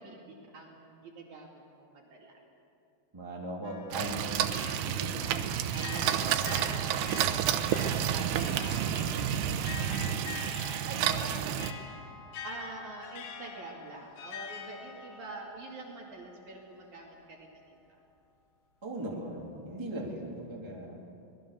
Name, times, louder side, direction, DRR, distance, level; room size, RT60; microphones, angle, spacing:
voice 1, 0.0-2.3 5.4-9.6 10.9-11.6 12.4-17.8, right 2 dB, 50° right, -1 dB, 3.4 m, -45 dB
voice 2, 3.1-4.5 4.9-5.1 7.6-8.1 10.7-11.2 18.8-21.0, right 1 dB, 5° right, -3 dB, 2.8 m, -39 dB
sound 1, 3.6-16.6, left 6 dB, 80° left, 3.6 m, -45 dB
sound 2, 3.9-11.7, right 10 dB, 85° right, 3.0 m, -30 dB
25.0 x 20.0 x 6.9 m, 2.6 s
omnidirectional pair, 4.6 m